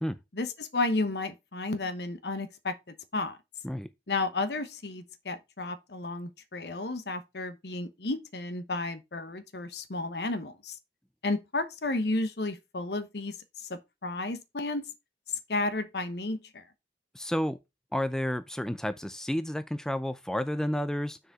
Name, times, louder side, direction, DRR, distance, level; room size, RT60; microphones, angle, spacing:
voice 1, 0.3-2.7 3.1-3.4 4.1-10.8 11.2-14.9 15.5-16.6, left 2 dB, 65° left, 1.0 m, -32 dB
voice 2, 17.1-17.6 17.9-21.2, equal, 5° left, 0.4 m, -31 dB
6.4 x 4.8 x 4.7 m
head